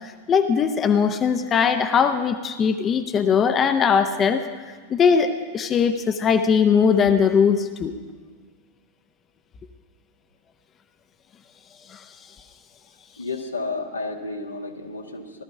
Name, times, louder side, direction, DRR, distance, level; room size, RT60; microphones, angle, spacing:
voice 1, 0.0-7.9 11.9-12.0, left 6 dB, 25° left, 8 dB, 0.8 m, -20 dB
voice 2, 13.2-15.4, left 3 dB, 80° left, 2 dB, 1.5 m, -31 dB
17.5 x 12.5 x 5.5 m, 1.5 s
figure-of-eight pair, 90°, 0 cm